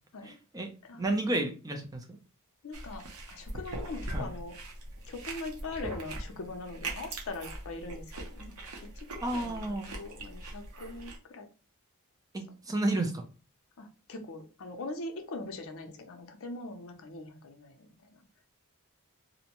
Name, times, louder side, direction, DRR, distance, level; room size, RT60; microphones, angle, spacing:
voice 1, 0.3-2.2 4.1-4.2 9.2-9.9 12.3-13.2, right 2 dB, 15° right, 5 dB, 0.4 m, -32 dB
voice 2, 0.8-1.3 2.6-4.6 5.1-8.6 9.0-11.5 13.8-18.2, left 2 dB, 65° left, 5 dB, 0.5 m, -42 dB
sound 1, 2.7-11.2, right 2 dB, 85° right, 0.7 m, -41 dB
2.6 x 2.1 x 2.9 m, 0.34 s
head